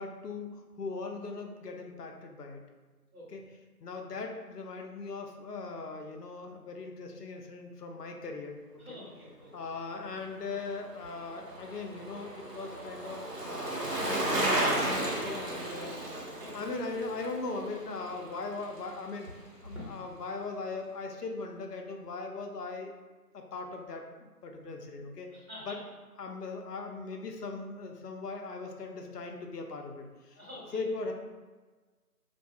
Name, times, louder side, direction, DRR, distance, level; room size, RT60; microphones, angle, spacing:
voice 1, 0.0-2.6 3.3-3.4 3.8-8.6 8.9-9.0 9.5-16.0 16.5-19.3 19.6-22.9 23.3-25.3 25.7-25.8 26.2-30.4 30.7-31.1, left 3 dB, 90° left, 3 dB, 0.6 m, -39 dB
voice 2, 8.8-9.5 16.3-16.7 19.7-19.9 25.3-25.8 30.3-30.9, left 1 dB, 65° right, -6 dB, 1.2 m, -46 dB
Bicycle, 10.5-18.9 19.2-19.3, right 1 dB, 85° right, 0.8 m, -34 dB
2.7 x 2.3 x 2.2 m, 1.3 s
figure-of-eight pair, 175°, 47 cm